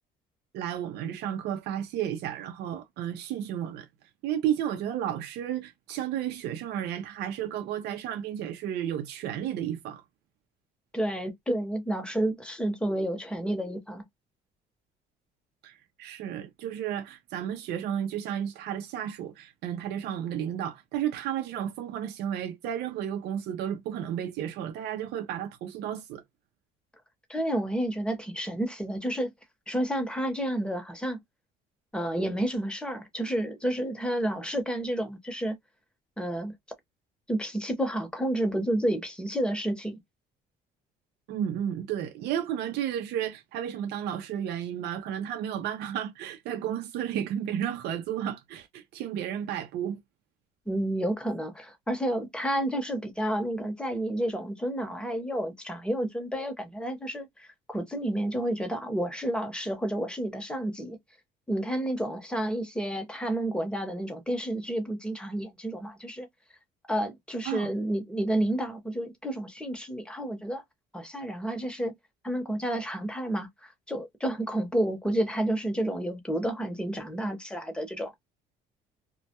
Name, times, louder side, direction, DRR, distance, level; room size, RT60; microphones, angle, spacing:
voice 1, 0.5-3.9 4.2-10.0 15.6-26.2 41.3-50.0 67.5-67.7, right 10 dB, 75° right, 0.5 m, -32 dB
voice 2, 10.9-14.0 27.3-29.3 29.7-31.2 31.9-35.6 36.2-36.5 37.3-40.0 50.7-61.0 61.5-66.3 66.9-70.6 70.9-71.9 72.2-78.1, right 1 dB, 5° left, 0.8 m, -30 dB
2.1 x 2.1 x 2.8 m
cardioid pair, 110°, 17 cm